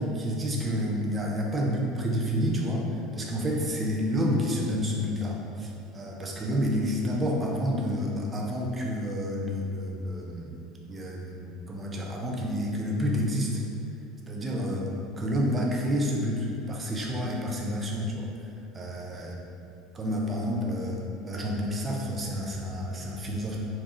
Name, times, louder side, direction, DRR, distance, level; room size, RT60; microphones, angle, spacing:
voice 1, 0.0-10.6 10.9-13.6 14.3-14.9 15.2-18.3 18.7-19.3 19.9-21.0 21.3-23.6, equal, 25° right, -2 dB, 0.4 m, -29 dB
2.7 x 2.3 x 2.3 m, 2.5 s
figure-of-eight pair, 70°, 0 cm